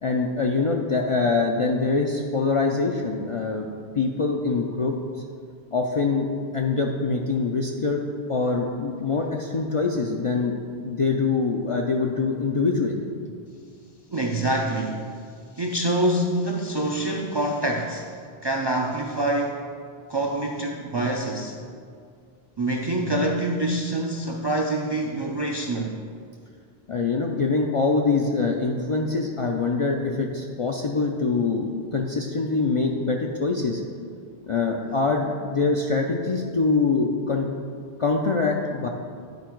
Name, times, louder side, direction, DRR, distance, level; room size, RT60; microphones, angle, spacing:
voice 1, 0.0-3.7 3.9-5.0 5.7-6.3 6.5-8.0 8.3-10.6 10.8-13.0 26.9-33.8 34.5-37.5 38.0-38.9, left 4 dB, 50° left, 1 dB, 0.4 m, -24 dB
voice 2, 14.1-15.2 15.6-18.1 18.4-19.6 20.1-21.6 22.6-26.0, right 1 dB, 40° right, 0 dB, 0.4 m, -25 dB
9.6 x 4.7 x 4.5 m, 2.2 s
omnidirectional pair, 1.0 m